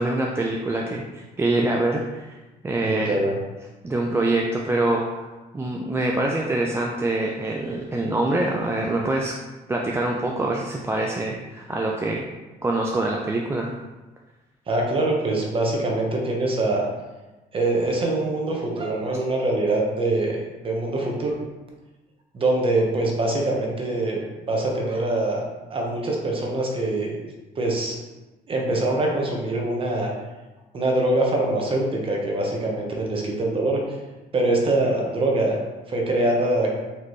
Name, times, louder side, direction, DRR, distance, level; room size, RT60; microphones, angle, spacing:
voice 1, 0.0-2.4 2.6-3.2 3.8-5.3 5.5-9.3 9.7-12.2 12.6-13.7, right 2 dB, 15° right, -1 dB, 0.4 m, -25 dB
voice 2, 2.8-3.4 14.7-16.9 17.5-21.3 22.3-25.4 25.7-27.2 27.6-28.0 28.5-30.1 30.7-33.8 34.3-35.6 35.9-36.7, right 2 dB, 30° right, -1 dB, 1.0 m, -24 dB
4.1 x 3.2 x 3.1 m, 1.1 s
cardioid pair, 110°, 17 cm